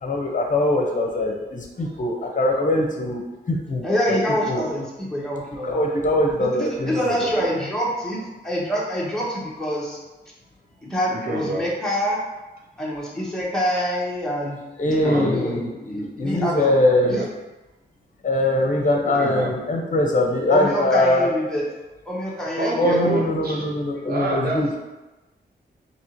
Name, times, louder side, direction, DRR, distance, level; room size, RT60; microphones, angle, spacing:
voice 1, 0.0-3.2 3.5-4.2 4.5-4.6 5.6-6.9 14.8-17.2 18.2-21.3 22.8-24.7, left 1 dB, 45° left, 0 dB, 0.7 m, -22 dB
voice 2, 3.8-5.8 6.4-10.0 10.8-12.2 12.8-14.6 15.0-16.7 17.1-17.2 20.5-21.6 22.1-23.6, equal, 5° left, -6 dB, 0.9 m, -26 dB
voice 3, 6.8-7.5 11.1-11.6 14.9-15.3 17.0-17.3 19.0-19.5 22.6-23.8 24.1-24.8, right 2 dB, 55° right, -2 dB, 0.6 m, -28 dB
4.1 x 2.9 x 2.9 m, 1.1 s
wide cardioid pair, 110°, 19 cm